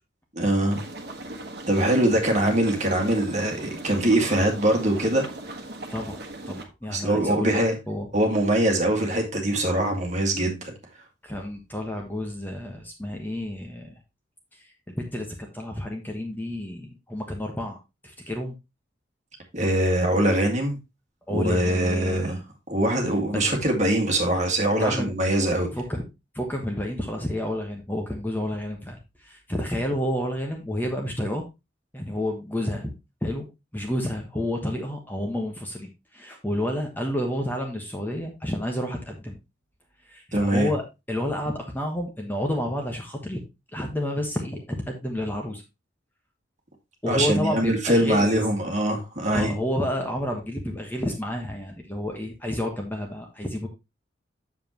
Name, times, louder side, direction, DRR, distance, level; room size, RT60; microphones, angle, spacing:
voice 1, 0.3-0.8 1.7-5.6 6.9-7.8 8.1-10.7 19.5-20.8 21.3-22.4 22.7-25.7 40.3-40.7 47.1-49.5, right 1 dB, 40° right, 2.0 m, -23 dB
sound 1, 0.7-6.7, right 2 dB, 55° right, 1.4 m, -39 dB
voice 2, 6.5-7.6 7.9-8.1 11.2-14.0 14.6-17.8 18.0-18.5 21.3-22.3 23.3-23.6 24.8-25.1 25.7-26.0 26.3-31.4 31.9-32.9 33.2-33.5 33.7-39.4 40.1-40.8 41.1-43.4 43.7-45.6 47.0-48.3 49.3-53.7, left 1 dB, 10° left, 1.2 m, -30 dB
7.6 x 7.2 x 2.9 m
head